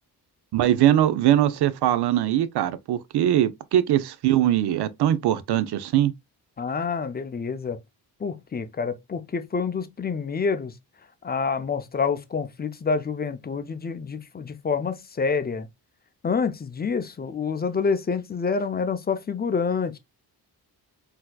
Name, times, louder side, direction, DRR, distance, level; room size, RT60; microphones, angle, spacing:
voice 1, 0.5-6.1, right 12 dB, 75° right, 0.5 m, -21 dB
voice 2, 6.6-7.8 8.2-10.7 11.2-15.7 16.2-20.0, left 5 dB, 25° left, 0.4 m, -27 dB
4.1 x 2.8 x 2.2 m
cardioid pair, 105°, 40 cm